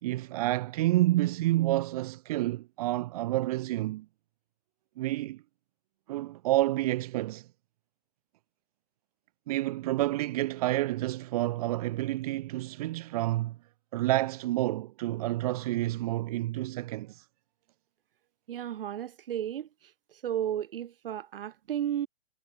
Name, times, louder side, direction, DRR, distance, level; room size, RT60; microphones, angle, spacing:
voice 1, 0.0-4.1 5.0-5.4 6.1-7.5 9.5-13.6 13.9-17.3, right 16 dB, 35° right, 3.4 m, -29 dB
voice 2, 18.5-22.1, right 10 dB, 60° right, 7.9 m, -34 dB
supercardioid pair, 180°, 31 cm